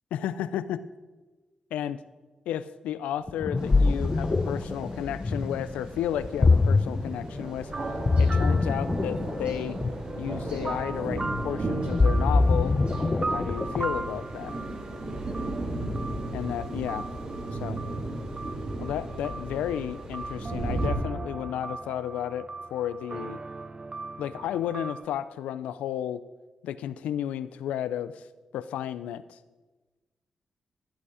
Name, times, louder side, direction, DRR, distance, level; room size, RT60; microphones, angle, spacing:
voice 1, 0.1-0.9 1.7-2.0 2.5-7.7 8.2-9.8 10.2-12.8 13.3-14.5 16.3-17.1 17.5-17.8 18.8-23.4 24.2-26.2 26.6-28.2 28.5-29.4, left 10 dB, 90° left, 15 dB, 0.4 m, -32 dB
Ocean, 3.3-14.1, left 3 dB, 35° left, 0.7 m, -25 dB
sound 1, 3.6-20.9, right 2 dB, 60° right, 3.2 m, -35 dB
sound 2, 7.3-25.1, right 3 dB, 35° right, 0.6 m, -39 dB
15.0 x 8.6 x 4.9 m, 1.2 s
supercardioid pair, 45°, 2 cm